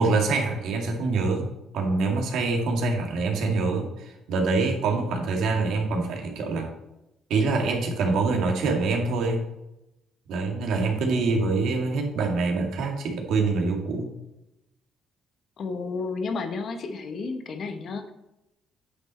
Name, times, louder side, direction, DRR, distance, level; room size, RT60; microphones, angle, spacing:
voice 1, 0.0-1.5 1.7-6.7 7.3-9.5 10.3-14.1, right 3 dB, 75° right, 2 dB, 2.1 m, -25 dB
voice 2, 15.6-18.1, left 4 dB, 50° left, 7 dB, 1.1 m, -32 dB
9.5 x 6.2 x 4.3 m, 0.90 s
cardioid pair, 135°, 0 cm